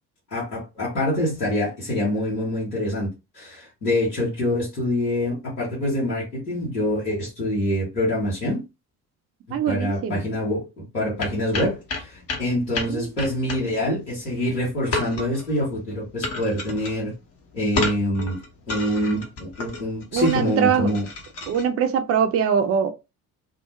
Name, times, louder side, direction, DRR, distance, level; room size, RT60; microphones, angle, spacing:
voice 1, 0.3-3.1 3.3-8.6 9.5-17.1 17.5-18.4 18.7-21.1, left 1 dB, 90° left, 0.9 m, -25 dB
voice 2, 9.5-10.3 12.8-13.1 20.1-20.9 21.5-22.9, right 7 dB, 30° right, 0.5 m, -22 dB
sound 1, 11.2-21.6, left 3 dB, 30° left, 0.8 m, -31 dB
2.4 x 2.0 x 2.9 m
figure-of-eight pair, 55°, 46 cm